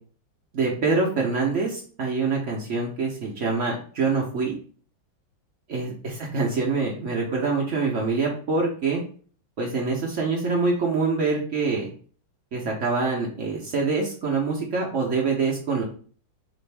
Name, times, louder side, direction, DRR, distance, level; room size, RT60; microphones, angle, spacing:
voice 1, 0.5-4.6 5.7-9.0 9.6-11.9 12.5-15.8, right 4 dB, 60° right, -1 dB, 0.8 m, -25 dB
4.9 x 2.6 x 3.3 m, 0.44 s
omnidirectional pair, 2.1 m